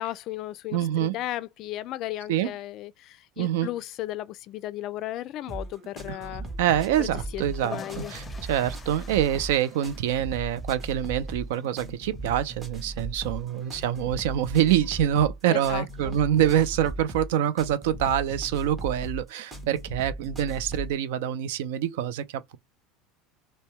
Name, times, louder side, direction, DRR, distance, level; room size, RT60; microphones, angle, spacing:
voice 1, 0.0-6.4 7.0-8.1 15.5-16.2, left 14 dB, 55° left, 0.3 m, -35 dB
voice 2, 0.7-1.2 2.3-2.5 3.4-3.7 6.6-7.8 8.1-22.6, right 10 dB, 75° right, 0.4 m, -25 dB
sound 1, 5.5-21.0, right 2 dB, 25° right, 1.2 m, -38 dB
sound 2, 7.3-14.2, left 4 dB, 20° left, 0.6 m, -47 dB
2.7 x 2.1 x 3.2 m
hypercardioid pair, 85°, 0 cm